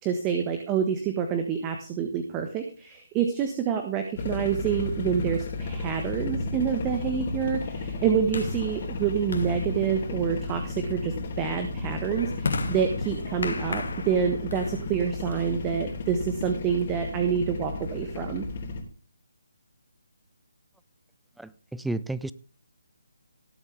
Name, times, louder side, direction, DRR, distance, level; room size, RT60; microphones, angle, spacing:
voice 1, 0.0-18.5, right 7 dB, 20° right, 6 dB, 1.3 m, -27 dB
sound 1, 4.2-18.8, left 3 dB, 40° left, 3.6 m, -33 dB
sound 2, 5.8-16.0, left 4 dB, 65° left, 2.7 m, -37 dB
voice 2, 21.4-22.3, right 2 dB, ahead, 16 dB, 0.4 m, -32 dB
18.5 x 8.2 x 3.4 m, 0.38 s
figure-of-eight pair, 150°, 0 cm